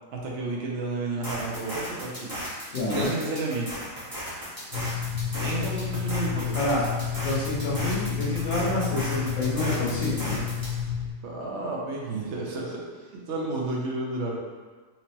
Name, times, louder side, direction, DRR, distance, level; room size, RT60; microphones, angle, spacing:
voice 1, 0.1-2.3 2.9-3.7 5.4-6.6 11.2-12.8 13.1-14.4, right 2 dB, 65° right, -3 dB, 0.9 m, -31 dB
sound 1, 1.2-10.8, equal, 20° right, 0.6 m, -35 dB
voice 2, 2.7-3.1 6.5-6.8 7.2-10.4, left 1 dB, 90° left, -7 dB, 1.4 m, -28 dB
sound 2, 4.7-11.1, left 8 dB, 45° left, 0.7 m, -31 dB
4.4 x 2.0 x 2.8 m, 1.4 s
omnidirectional pair, 1.4 m